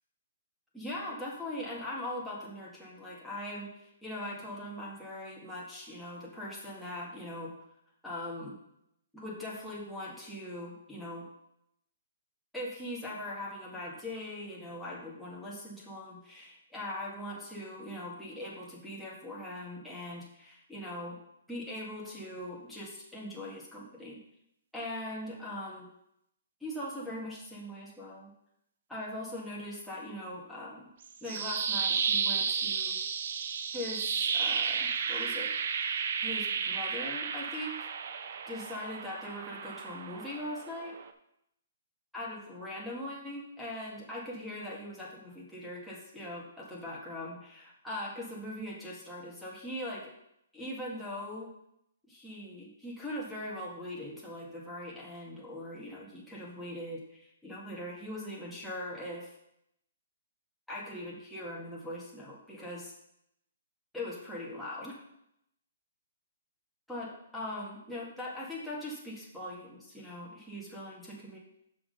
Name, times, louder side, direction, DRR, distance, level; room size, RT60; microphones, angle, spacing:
voice 1, 0.7-7.5 8.0-8.6 9.1-11.3 12.5-21.2 21.5-24.2 24.7-25.9 26.6-28.3 28.9-30.9 31.2-33.0 33.7-35.5 36.2-37.9 38.5-40.9 42.1-50.1 50.5-51.5 52.1-59.3 60.7-62.9 63.9-65.0 66.9-71.4, left 1 dB, ahead, -6 dB, 1.7 m, -41 dB
sound 1, 31.0-41.1, right 6 dB, 55° right, 0.6 m, -33 dB
6.1 x 5.8 x 5.3 m, 0.77 s
hypercardioid pair, 155°, 0 cm